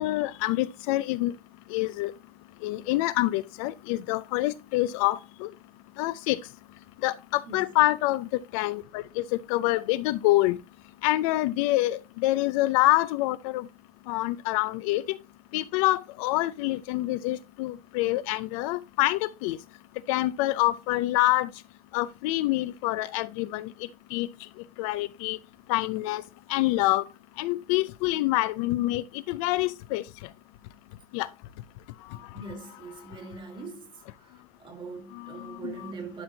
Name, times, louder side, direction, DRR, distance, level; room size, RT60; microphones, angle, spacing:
voice 1, 0.0-1.3 1.7-2.1 2.6-5.5 6.0-6.4 7.0-8.3 8.5-10.6 11.0-13.7 14.1-15.2 15.5-19.6 20.1-21.5 21.9-23.7 24.1-24.3 24.8-25.4 25.7-26.2 26.5-27.0 27.4-30.0 31.1-31.3 35.2-35.9, left 18 dB, 60° left, 0.5 m, -26 dB
voice 2, 32.1-36.2, right 4 dB, 25° right, 1.7 m, -42 dB
11.5 x 4.3 x 2.7 m
supercardioid pair, 150°, 19 cm